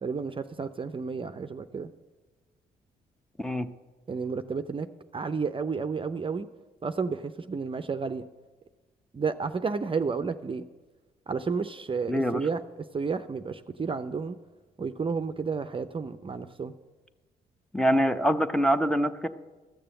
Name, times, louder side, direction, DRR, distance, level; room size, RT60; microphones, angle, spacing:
voice 1, 0.0-1.9 4.1-4.9 5.1-6.5 6.8-8.2 9.1-10.6 11.3-14.4 14.8-16.7, right 5 dB, 30° right, 9 dB, 0.6 m, -31 dB
voice 2, 12.1-12.4 17.7-19.3, equal, 5° left, 9 dB, 0.8 m, -24 dB
13.0 x 6.8 x 7.7 m, 1.2 s
supercardioid pair, 60°, 18 cm